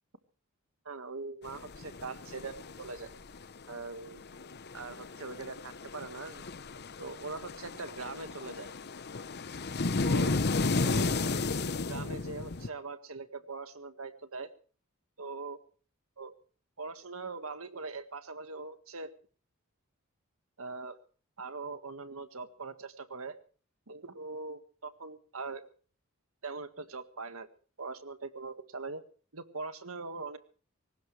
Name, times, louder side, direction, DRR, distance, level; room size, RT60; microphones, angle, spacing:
voice 1, 0.8-3.1 3.7-4.2 4.7-6.4 7.0-8.7 10.0-10.3 10.8-11.5 11.9-14.5 15.2-15.6 16.2-16.3 16.8-19.1 20.6-21.0 21.4-23.4 23.9-25.6 26.4-27.5 27.8-29.0 29.3-30.4, right 3 dB, 75° right, 10 dB, 1.8 m, -41 dB
sound 1, 1.5-3.8 4.1-12.7, left 3 dB, 50° left, 0.9 m, -34 dB
22.5 x 19.0 x 3.3 m, 0.41 s
head